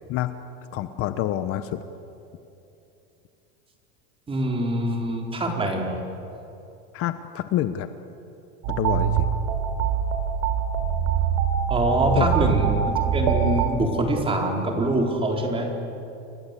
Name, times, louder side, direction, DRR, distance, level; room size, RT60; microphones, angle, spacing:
voice 1, 0.7-1.8 6.9-7.9 8.8-9.3 12.1-12.3, left 12 dB, 40° left, 10 dB, 1.2 m, -27 dB
voice 2, 4.3-6.0 11.7-15.7, right 1 dB, 15° right, 1 dB, 4.3 m, -24 dB
sound 1, 8.6-13.7, right 8 dB, 65° right, 3.7 m, -24 dB
29.5 x 23.0 x 8.5 m, 2.8 s
supercardioid pair, 145°, 34 cm